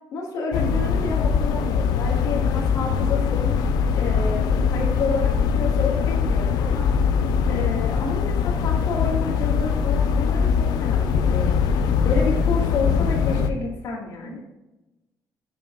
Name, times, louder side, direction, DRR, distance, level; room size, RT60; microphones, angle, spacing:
voice 1, 0.1-3.6 4.0-6.9 7.5-11.6 12.0-14.4, left 3 dB, 60° left, -3 dB, 1.9 m, -29 dB
sound 1, 0.5-13.5, left 6 dB, 90° left, 0.7 m, -22 dB
12.0 x 5.8 x 2.4 m, 1.0 s
cardioid pair, 145°, 7 cm